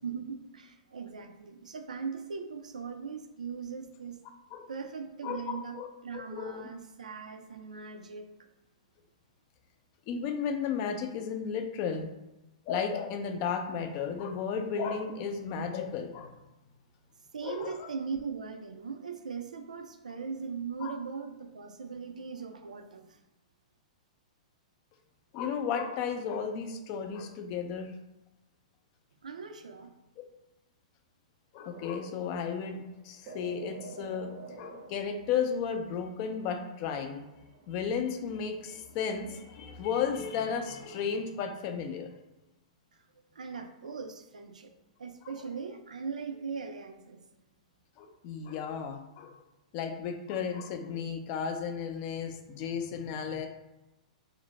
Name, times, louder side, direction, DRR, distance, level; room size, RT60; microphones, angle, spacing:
voice 1, 0.0-4.2 4.7-8.3 17.3-23.2 29.2-29.9 42.9-43.0 43.3-44.7 45.0-47.2, right 5 dB, 85° right, 6 dB, 0.3 m, -39 dB
voice 2, 5.2-5.9 6.1-6.7 10.1-12.1 12.7-16.4 17.4-17.9 20.8-20.9 25.3-27.9 31.5-37.2 37.7-42.1 48.0-49.3 49.7-53.5, left 6 dB, 40° left, 5 dB, 0.4 m, -34 dB
sound 1, 31.7-39.6, right 3 dB, 35° right, 0.6 m, -51 dB
2.5 x 2.1 x 3.9 m, 0.96 s
hypercardioid pair, 120°, 4 cm